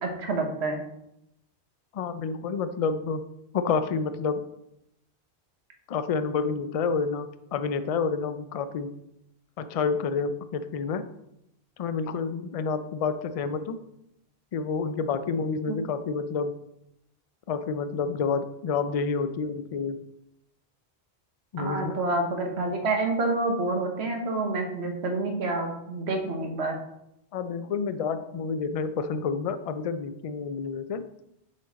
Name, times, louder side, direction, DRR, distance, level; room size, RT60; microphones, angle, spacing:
voice 1, 0.0-0.8 21.6-26.7, right 2 dB, 70° right, 3 dB, 1.4 m, -28 dB
voice 2, 1.9-3.2 3.5-4.4 5.9-8.9 9.6-11.0 11.8-13.8 14.5-16.5 17.5-20.0 21.5-22.0 27.3-31.0, left 5 dB, 60° left, 11 dB, 0.3 m, -29 dB
6.2 x 5.3 x 4.0 m, 0.81 s
omnidirectional pair, 1.1 m